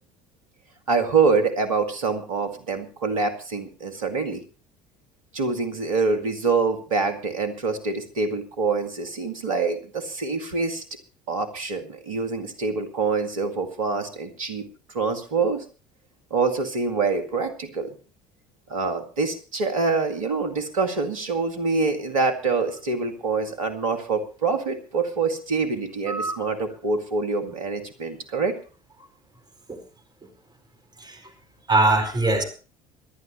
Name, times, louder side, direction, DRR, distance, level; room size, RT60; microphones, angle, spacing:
voice 1, 0.9-4.4 5.3-10.8 11.3-15.6 16.3-18.0 18.7-28.6, right 4 dB, 75° right, 8 dB, 2.0 m, -25 dB
voice 2, 31.7-32.4, right 2 dB, 25° right, 5 dB, 4.6 m, -22 dB
25.0 x 11.0 x 3.1 m, 0.36 s
figure-of-eight pair, 65°, 17 cm